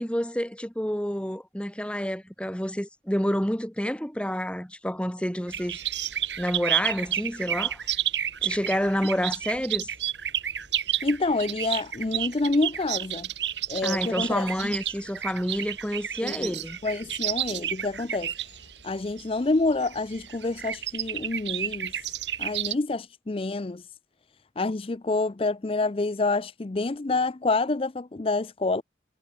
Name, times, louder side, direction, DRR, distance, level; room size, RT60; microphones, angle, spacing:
voice 1, 0.0-5.8 6.4-8.0 8.4-9.9 13.8-16.8, equal, 5° left, 1.9 m, -29 dB
sound 1, 5.5-22.7, right 11 dB, 75° right, 6.0 m, -31 dB
voice 2, 11.0-13.3 13.7-14.7 16.2-16.6 16.8-18.3 18.8-22.0 22.4-23.9 24.6-28.8, left 3 dB, 30° left, 0.5 m, -27 dB
head